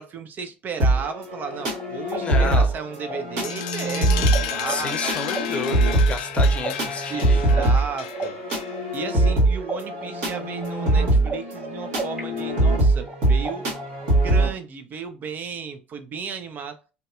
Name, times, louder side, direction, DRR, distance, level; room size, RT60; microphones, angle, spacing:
voice 1, 0.0-5.8 7.1-8.4 8.9-13.7 14.1-16.8, right 5 dB, 40° right, 0.4 m, -34 dB
sound 1, 0.8-14.5, right 2 dB, 70° right, 1.3 m, -22 dB
sound 2, 1.4-4.4 4.6-9.3 9.7-12.2 12.5-14.1, right 3 dB, 20° right, 1.1 m, -34 dB
voice 2, 2.2-2.7 4.7-7.4, left 4 dB, 25° left, 0.7 m, -30 dB
sound 3, 3.4-9.0, left 10 dB, 75° left, 0.3 m, -33 dB
2.7 x 2.2 x 2.3 m
hypercardioid pair, 75°, 4 cm